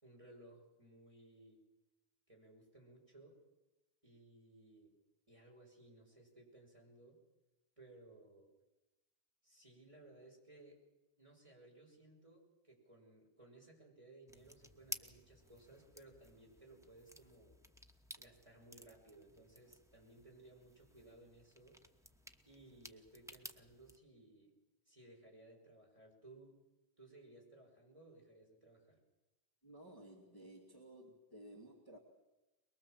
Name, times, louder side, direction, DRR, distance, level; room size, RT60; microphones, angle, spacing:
voice 1, 0.0-1.6 2.3-3.4 4.0-5.0 5.3-7.2 7.8-8.5 9.4-10.8 11.2-17.6 18.2-21.8 22.4-24.5 24.8-26.6 27.0-29.0, right 2 dB, 30° right, -1 dB, 5.8 m, -61 dB
sound 1, 14.3-24.0, equal, 5° right, 1.0 m, -55 dB
voice 2, 29.6-32.0, right 1 dB, 20° left, -2 dB, 2.6 m, -56 dB
23.0 x 22.5 x 7.6 m, 1.0 s
omnidirectional pair, 1.1 m